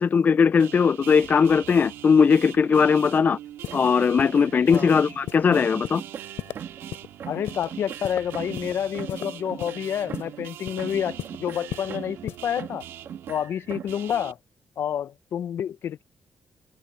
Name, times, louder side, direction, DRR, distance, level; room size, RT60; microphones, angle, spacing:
voice 1, 0.0-3.4 3.7-6.0, left 6 dB, 45° left, 0.4 m, -19 dB
sound 1, 0.6-14.3, right 12 dB, 90° right, 2.0 m, -43 dB
sound 2, 3.6-3.8 4.2-4.4 4.7-4.9 5.3-5.4 5.8-6.0 6.4-6.6 6.9-7.1 7.5-7.7 8.0-8.7 9.1-9.3 9.6-9.8 10.1-10.3 10.7-10.8 11.2-11.4 11.7-11.9 12.3-12.4, left 13 dB, 90° left, 3.4 m, -34 dB
sound 3, 3.7-5.2 5.4-6.9 7.2-10.5 10.8-12.3 12.6-14.0, right 8 dB, 65° right, 2.3 m, -40 dB
voice 2, 7.3-12.8 13.3-14.4 14.8-16.0, left 9 dB, 70° left, 0.8 m, -29 dB
cardioid pair, 70°, 4 cm